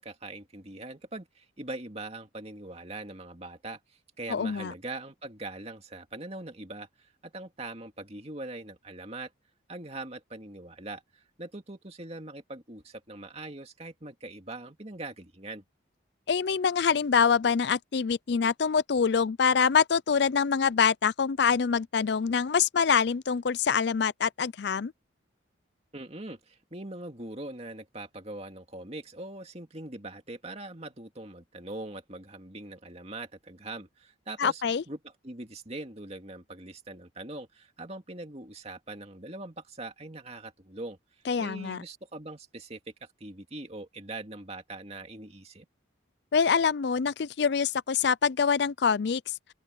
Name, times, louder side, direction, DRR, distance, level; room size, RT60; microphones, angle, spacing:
voice 1, 0.0-3.8 4.2-9.3 9.7-15.6 25.9-41.0 41.4-42.8 43.2-45.7, right 2 dB, 30° right, 2.4 m, -42 dB
voice 2, 4.3-4.7 16.3-24.9 34.4-34.8 41.3-41.8 46.3-49.3, left 6 dB, 55° left, 0.4 m, -25 dB
open air
head